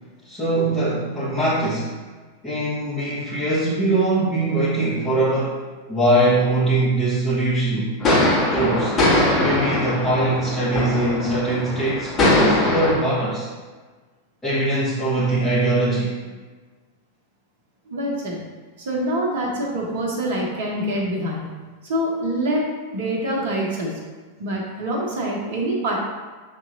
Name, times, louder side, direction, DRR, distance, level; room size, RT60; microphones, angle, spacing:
voice 1, 0.2-2.0 2.4-7.9 8.5-9.0 9.3-13.5 14.4-16.1, right 1 dB, 15° left, -12 dB, 1.3 m, -22 dB
sound 1, 8.0-13.0, left 1 dB, 30° left, 1.5 m, -21 dB
voice 2, 17.9-18.5 18.8-21.5 21.8-24.0 24.4-26.0, right 1 dB, 55° right, -1 dB, 1.0 m, -25 dB
6.5 x 3.0 x 2.6 m, 1.4 s
figure-of-eight pair, 90°, 0 cm